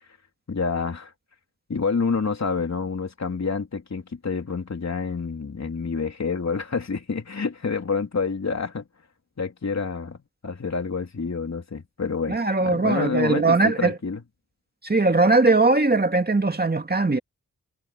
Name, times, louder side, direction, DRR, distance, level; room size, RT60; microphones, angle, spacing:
voice 1, 0.5-1.1 1.7-8.9 9.4-10.2 10.4-14.2, left 5 dB, 55° left, 3.4 m, -28 dB
voice 2, 12.3-14.0 14.8-17.2, right 3 dB, 30° right, 2.2 m, -20 dB
wide cardioid pair, 65°, 32 cm